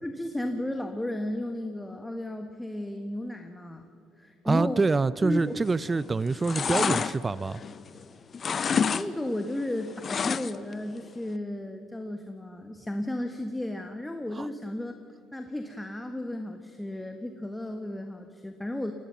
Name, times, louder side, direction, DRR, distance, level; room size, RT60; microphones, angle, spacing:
voice 1, 0.0-3.9 4.2-4.8 5.2-5.6 8.5-8.6 8.9-15.0 15.3-18.9, left 1 dB, 10° left, 5 dB, 1.4 m, -34 dB
voice 2, 4.4-7.6 14.4-14.5, right 3 dB, 25° right, 18 dB, 0.4 m, -26 dB
sound 1, 5.6-6.0 6.3-8.0 8.3-9.1 9.3-10.7 11.1-11.2, left 6 dB, 40° left, 0.7 m, -28 dB
21.5 x 18.0 x 7.0 m, 2.4 s
supercardioid pair, 75°, 0 cm